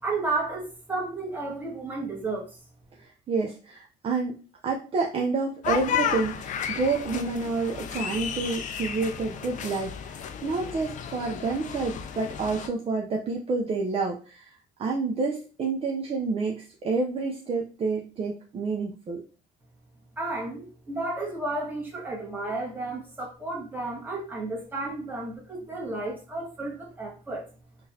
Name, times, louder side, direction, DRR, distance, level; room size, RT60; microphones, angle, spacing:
voice 1, 0.0-2.5 20.2-27.5, right 2 dB, 10° right, -3 dB, 1.4 m, -32 dB
voice 2, 3.0-4.4 4.6-19.2, right 4 dB, 35° right, 0 dB, 0.5 m, -29 dB
sound 1, 5.6-12.7, left 8 dB, 50° left, 0.4 m, -33 dB
3.8 x 2.4 x 2.7 m, 0.35 s
cardioid pair, 110°, 17 cm